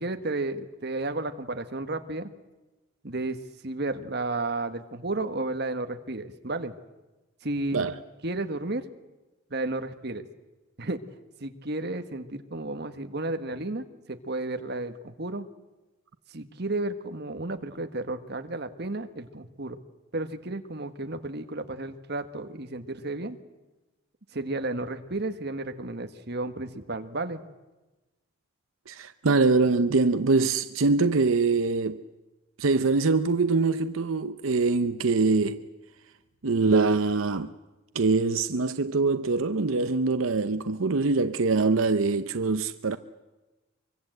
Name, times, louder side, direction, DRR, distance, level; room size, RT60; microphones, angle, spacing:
voice 1, 0.0-2.3 3.0-3.4 3.6-6.7 7.4-7.8 8.2-8.8 9.5-10.2 10.8-11.0 11.4-15.4 16.3-19.8 20.1-23.4 24.3-27.4, right 2 dB, 55° right, 1.6 m, -32 dB
voice 2, 28.9-32.0 32.6-35.6 36.4-37.5 37.9-43.0, right 3 dB, 85° right, 0.8 m, -24 dB
24.5 x 24.0 x 8.0 m
head